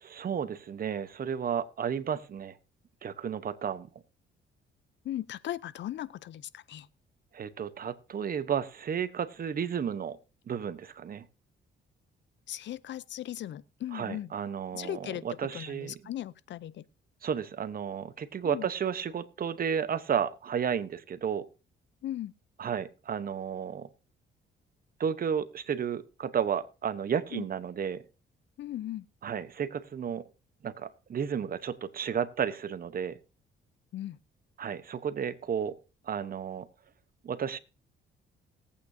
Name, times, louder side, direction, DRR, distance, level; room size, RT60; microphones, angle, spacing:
voice 1, 0.0-2.5 3.0-3.9 7.3-10.2 10.5-11.2 13.9-16.0 17.2-21.5 22.6-23.9 25.0-28.0 29.2-30.2 30.6-33.2 34.6-35.8 36.1-36.7 37.2-37.6, right 7 dB, 45° right, 1.0 m, -32 dB
voice 2, 5.0-6.9 12.5-14.3 14.7-15.2 15.5-16.8 18.4-18.7 22.0-22.3 27.3-27.4 28.6-29.0 33.9-34.2, left 12 dB, 65° left, 0.6 m, -37 dB
19.0 x 8.5 x 2.7 m
cardioid pair, 90°, 20 cm